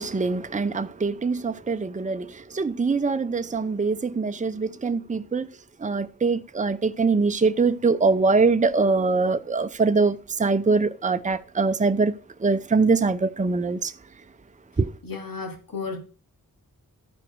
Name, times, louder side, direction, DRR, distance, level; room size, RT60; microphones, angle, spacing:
voice 1, 0.0-5.5 5.8-12.1 12.4-13.9 14.8-14.9, right 4 dB, 20° right, 0.6 m, -23 dB
voice 2, 15.0-16.0, left 4 dB, 75° left, 2.9 m, -33 dB
13.0 x 4.8 x 4.7 m
cardioid pair, 40°, 34 cm